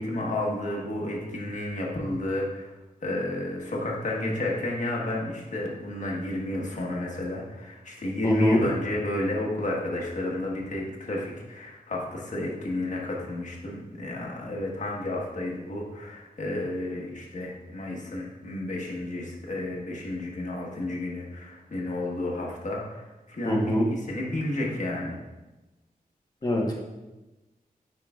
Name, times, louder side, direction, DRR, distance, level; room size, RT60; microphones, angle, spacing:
voice 1, 0.0-2.7 3.0-25.2, left 1 dB, 55° left, -2 dB, 1.3 m, -31 dB
voice 2, 8.2-8.6 23.4-23.9 26.4-26.8, left 1 dB, 25° left, -2 dB, 1.2 m, -23 dB
9.2 x 4.7 x 2.4 m, 1.1 s
wide cardioid pair, 110°, 16 cm